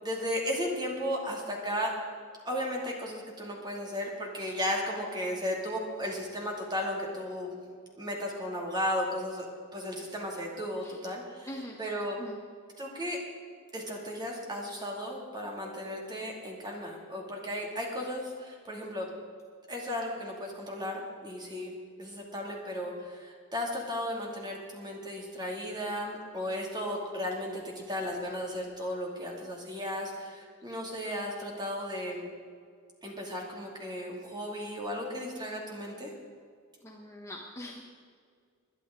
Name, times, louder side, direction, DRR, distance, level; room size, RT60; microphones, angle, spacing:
voice 1, 0.0-1.9 2.4-7.6 8.0-9.5 9.7-12.2 12.8-13.2 13.7-19.1 19.7-27.5 27.9-32.3 33.0-36.1, equal, 20° right, 0 dB, 2.6 m, -35 dB
voice 2, 11.5-11.8 12.2-12.4 36.8-37.8, left 1 dB, 15° left, 0 dB, 1.1 m, -42 dB
21.0 x 11.0 x 3.9 m, 2.1 s
head